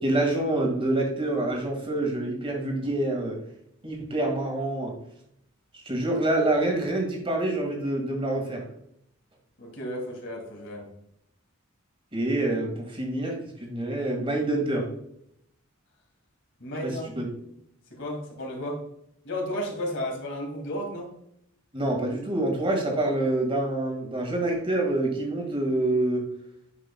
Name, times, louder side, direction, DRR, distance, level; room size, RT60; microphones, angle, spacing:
voice 1, 0.0-3.4 3.8-4.9 5.7-8.6 12.1-14.9 16.8-17.3 21.7-26.2, right 1 dB, 25° right, 1 dB, 1.8 m, -26 dB
voice 2, 9.6-10.8 16.6-17.2 17.9-18.8 19.2-21.1, equal, 55° left, 0 dB, 2.2 m, -33 dB
9.6 x 5.5 x 2.3 m, 0.73 s
head